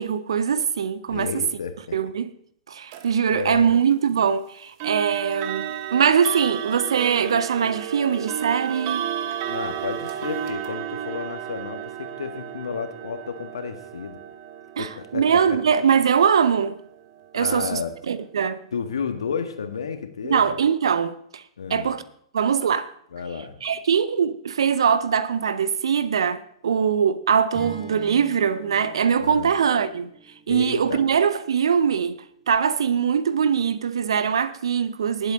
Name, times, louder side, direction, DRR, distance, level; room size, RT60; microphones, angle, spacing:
voice 1, 0.0-1.4 1.9-2.3 2.7-9.1 14.8-16.8 17.3-17.8 18.1-18.6 20.2-21.4 21.7-22.0 22.3-22.9 23.6-30.1 30.5-32.2 32.5-35.3, right 7 dB, 65° right, 0.8 m, -22 dB
voice 2, 1.1-1.7 3.3-3.7 9.4-14.2 14.8-15.6 17.3-17.9 18.7-20.5 21.6-21.9 23.1-23.5 29.2-29.5 30.5-31.0, left 6 dB, 70° left, 1.5 m, -32 dB
sound 1, 2.9-3.1 4.8-17.6, right 10 dB, 45° right, 1.1 m, -33 dB
Acoustic guitar / Strum, 27.5-31.8, equal, 5° right, 5.4 m, -44 dB
19.0 x 7.9 x 3.9 m
figure-of-eight pair, 105°, 3 cm